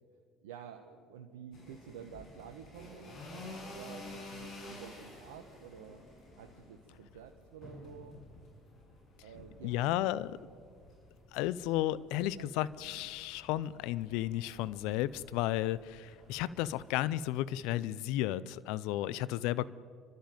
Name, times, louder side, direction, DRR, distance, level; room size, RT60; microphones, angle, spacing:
voice 1, 0.4-6.0 6.4-8.2 9.2-9.9 11.9-13.1 19.0-19.3, right 8 dB, 85° right, 5 dB, 1.2 m, -51 dB
sound 1, 1.5-17.2, left 2 dB, 55° left, 7.6 m, -52 dB
voice 2, 9.6-10.3 11.3-19.7, left 14 dB, 70° left, 19 dB, 0.6 m, -33 dB
29.5 x 13.0 x 9.2 m, 2.1 s
hypercardioid pair, 65°, 0 cm